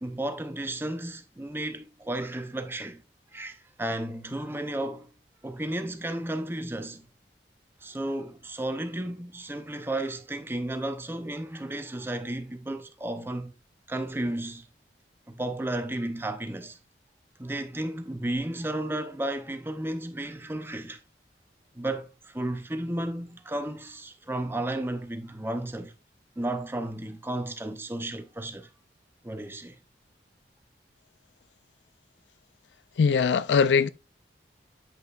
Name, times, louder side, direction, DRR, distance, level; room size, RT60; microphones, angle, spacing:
voice 1, 0.0-3.0 3.3-5.1 5.4-7.1 7.8-13.5 13.9-14.6 15.3-16.8 17.4-21.0 21.7-25.9 26.4-28.7 29.2-29.8, right 1 dB, 10° right, 0.6 m, -33 dB
voice 2, 33.0-33.9, left 6 dB, 80° left, 0.4 m, -21 dB
8.1 x 5.4 x 2.4 m
head